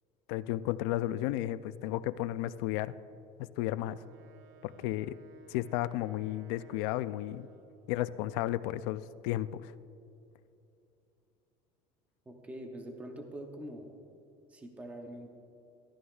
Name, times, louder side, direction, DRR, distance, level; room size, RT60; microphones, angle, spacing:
voice 1, 0.3-2.9 3.4-4.0 4.6-5.2 5.5-7.5 7.9-9.7, left 14 dB, 85° left, 15 dB, 0.4 m, -33 dB
Wind instrument woodwind instrument, 3.8-7.9, right 6 dB, 85° right, 0.8 m, -57 dB
voice 2, 12.3-13.9 14.5-15.3, right 1 dB, 10° right, 3 dB, 0.7 m, -44 dB
14.5 x 12.5 x 2.3 m, 2.8 s
cardioid pair, 165°, 13 cm